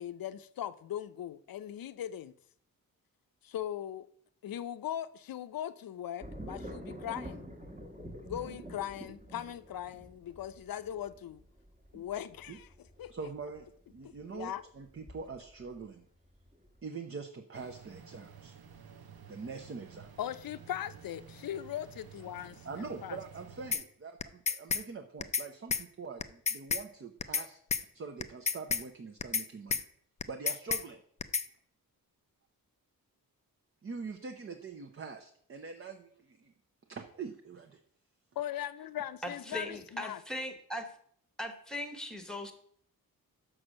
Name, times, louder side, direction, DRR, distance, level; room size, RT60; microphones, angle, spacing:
voice 1, 0.0-2.3 3.4-4.1 4.4-7.4 8.2-11.4 11.9-12.7 13.0-13.1 14.3-14.6 20.2-23.2 38.4-40.2, left 11 dB, 70° left, 0.6 m, -39 dB
sound 1, 6.2-15.8 16.2-16.8, right 1 dB, 20° right, 1.3 m, -47 dB
voice 2, 13.1-16.1 16.8-18.5 19.3-20.3 22.6-29.8 30.3-31.0 33.8-36.5 36.9-37.8, right 5 dB, 35° right, 0.7 m, -44 dB
sound 2, 17.5-23.8, right 6 dB, 85° right, 1.0 m, -53 dB
sound 3, 23.7-23.8 24.2-24.8 25.2-25.5 25.7-25.8 26.2-26.8 27.2-27.5 27.7-27.8 28.2-28.8 29.2-29.5 29.7-29.8 30.2-30.8 31.2-31.5, left 5 dB, 20° left, 0.4 m, -30 dB
voice 3, 39.2-40.8 41.4-42.5, left 1 dB, ahead, 1.1 m, -39 dB
6.2 x 6.1 x 6.4 m
wide cardioid pair, 135°, 36 cm